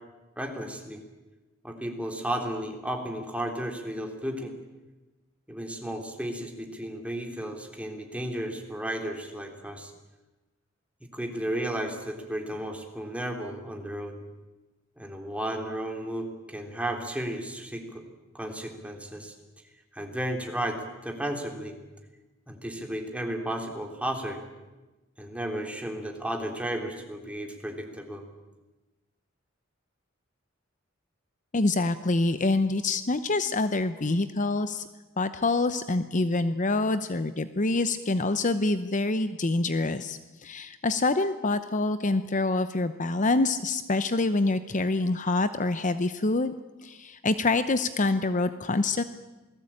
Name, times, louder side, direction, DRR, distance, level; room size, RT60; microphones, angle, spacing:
voice 1, 0.4-1.0 1.6-4.5 5.5-9.9 11.1-14.2 15.0-18.0 18.3-19.3 19.9-21.8 22.5-24.4 25.2-28.2, right 1 dB, 5° right, 3 dB, 3.4 m, -33 dB
voice 2, 31.5-34.8 35.2-46.5 46.8-49.0, left 2 dB, 40° left, 11 dB, 0.8 m, -26 dB
28.0 x 19.5 x 8.8 m, 1.1 s
head